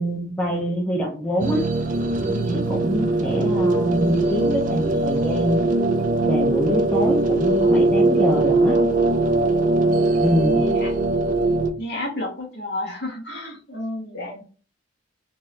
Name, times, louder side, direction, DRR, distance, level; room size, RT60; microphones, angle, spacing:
voice 1, 0.0-1.6 2.2-5.6 6.3-8.8 10.2-10.6, equal, 5° left, -3 dB, 0.8 m, -24 dB
sound 1, 1.4-11.7, right 2 dB, 40° right, 0.5 m, -21 dB
voice 2, 10.0-10.9 11.8-14.4, left 1 dB, 55° left, -2 dB, 1.6 m, -31 dB
3.6 x 2.7 x 3.2 m, 0.37 s
head